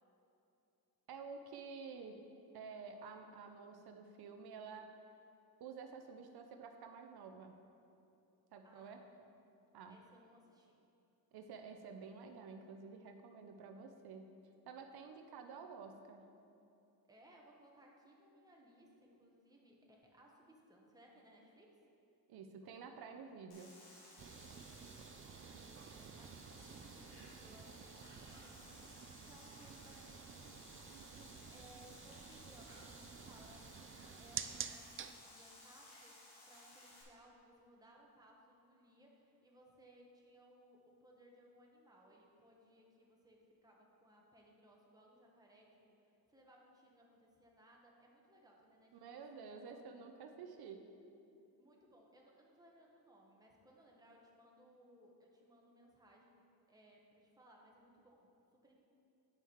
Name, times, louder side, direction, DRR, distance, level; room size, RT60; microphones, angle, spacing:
voice 1, 1.1-2.3 2.5-4.9 5.6-7.5 8.5-9.0 9.7-10.0 11.3-14.3 14.7-16.3 22.3-23.7 48.9-50.8, right 5 dB, 80° right, 5 dB, 0.7 m, -51 dB
voice 2, 8.6-9.3 9.9-10.7 15.0-15.4 17.1-21.8 25.6-33.7 34.2-49.2 49.5-49.8 51.6-58.3 58.6-58.8, equal, 10° right, -2 dB, 1.3 m, -64 dB
sound 1, 23.5-37.0, left 1 dB, 85° left, 1.9 m, -59 dB
sound 2, 24.2-35.1, right 7 dB, 35° right, 0.4 m, -51 dB
8.9 x 5.6 x 4.6 m, 2.8 s
cardioid pair, 110°, 37 cm